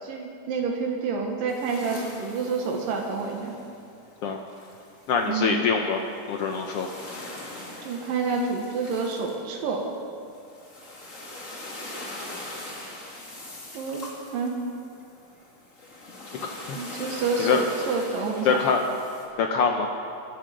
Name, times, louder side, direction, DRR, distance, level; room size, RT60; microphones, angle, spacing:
voice 1, 0.0-3.5 5.3-5.6 7.8-9.9 13.7-14.1 14.3-14.6 16.7-18.6, right 4 dB, 85° right, 1 dB, 3.1 m, -28 dB
sound 1, 1.5-19.3, left 1 dB, 25° left, 2.3 m, -42 dB
voice 2, 5.1-6.0 6.3-6.9 16.7-16.8 17.4-17.6 18.4-18.8 19.4-19.9, left 5 dB, 85° left, 3 dB, 1.3 m, -23 dB
24.5 x 11.5 x 5.2 m, 2.5 s
omnidirectional pair, 3.9 m